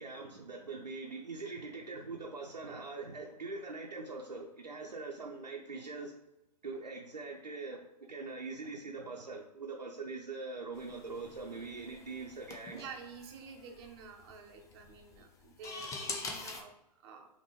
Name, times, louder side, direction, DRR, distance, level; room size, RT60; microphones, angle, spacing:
voice 1, 0.0-6.1 6.6-12.9, right 3 dB, 85° right, -1 dB, 0.7 m, -43 dB
sound 1, 10.7-16.6, left 3 dB, 15° left, 0.6 m, -45 dB
voice 2, 12.7-17.3, right 5 dB, 40° right, 3 dB, 0.8 m, -50 dB
5.7 x 2.9 x 3.1 m, 0.91 s
figure-of-eight pair, 115°, 21 cm